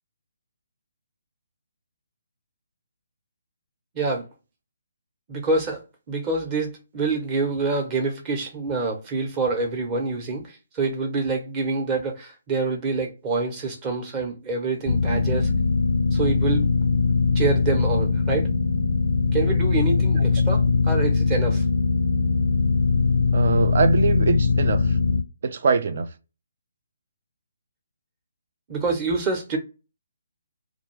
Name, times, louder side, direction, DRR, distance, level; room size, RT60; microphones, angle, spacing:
voice 1, 3.9-4.3 5.3-5.8 6.1-10.4 10.7-15.5 16.1-16.7 17.3-18.5 19.3-21.6 28.7-29.6, right 3 dB, 20° right, 0.8 m, -26 dB
sound 1, 14.9-25.2, left 4 dB, 55° left, 0.4 m, -21 dB
voice 2, 23.3-25.0 25.4-26.1, right 4 dB, 50° right, 0.4 m, -23 dB
2.5 x 2.2 x 3.2 m
figure-of-eight pair, 140°, 0 cm